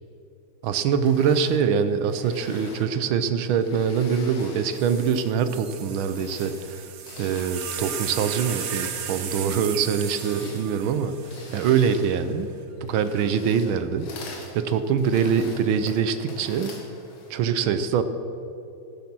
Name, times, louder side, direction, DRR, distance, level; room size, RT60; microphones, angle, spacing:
voice 1, 0.6-6.9 7.2-11.2 11.5-12.5 12.8-14.1 14.4-16.7 17.3-18.0, right 7 dB, 85° right, 11 dB, 1.6 m, -24 dB
sound 1, 0.9-5.5 6.0-17.5, left 2 dB, 80° left, 2.7 m, -45 dB
sound 2, 4.4-4.5 4.8-12.2 13.0-13.5, right 8 dB, 60° right, 1.6 m, -36 dB
16.0 x 12.0 x 6.1 m, 2.9 s
omnidirectional pair, 2.2 m